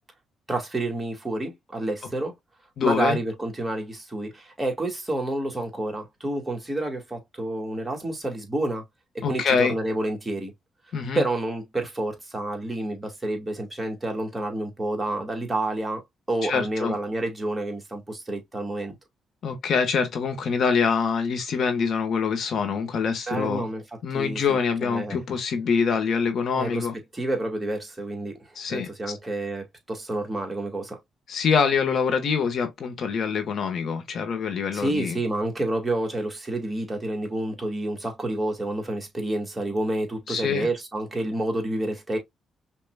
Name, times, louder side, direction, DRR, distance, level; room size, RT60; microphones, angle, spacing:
voice 1, 0.5-2.3 2.8-8.8 9.1-10.5 11.1-16.0 16.3-18.9 23.3-23.8 24.1-25.2 26.5-26.9 27.1-28.4 28.7-31.0 34.7-42.2, right 1 dB, 15° right, 2.3 m, -29 dB
voice 2, 2.8-3.2 9.2-9.7 10.9-11.2 16.4-16.9 19.4-23.6 24.0-26.9 28.5-28.9 31.3-35.2 40.3-40.7, left 6 dB, 60° left, 1.4 m, -25 dB
5.7 x 2.9 x 2.3 m
cardioid pair, 90°, 0 cm